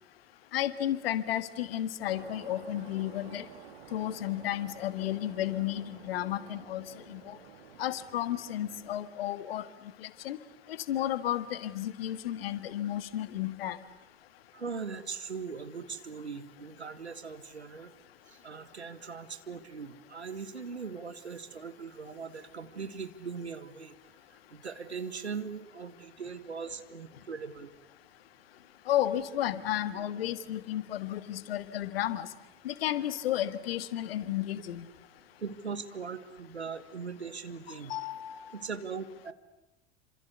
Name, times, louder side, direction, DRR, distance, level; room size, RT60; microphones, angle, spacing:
voice 1, 0.5-3.5 3.9-7.4 7.8-9.7 10.0-10.4 10.7-13.8 28.9-32.3 32.6-34.8 37.9-38.4, left 12 dB, 65° left, 14 dB, 1.7 m, -32 dB
sound 1, 2.0-9.0, right 8 dB, 65° right, 3.0 m, -52 dB
voice 2, 14.5-17.9 18.3-23.9 24.5-27.7 35.4-37.9 38.5-39.3, right 5 dB, 80° right, 11 dB, 1.8 m, -40 dB
27.5 x 26.5 x 8.2 m, 0.95 s
figure-of-eight pair, 80°, 33 cm